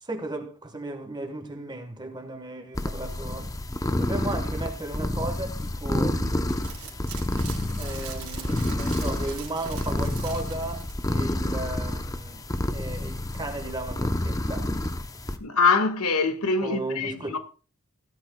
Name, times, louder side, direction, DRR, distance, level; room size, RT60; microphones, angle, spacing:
voice 1, 0.0-6.6 7.8-14.8 16.6-17.4, right 2 dB, 20° right, 1.2 m, -35 dB
sound 1, 2.7-15.4, left 1 dB, 15° left, 0.6 m, -29 dB
sound 2, 6.5-11.1 11.4-11.5, right 5 dB, 75° right, 3.5 m, -41 dB
voice 2, 15.4-17.4, left 4 dB, 80° left, 1.5 m, -23 dB
17.0 x 11.0 x 2.2 m
head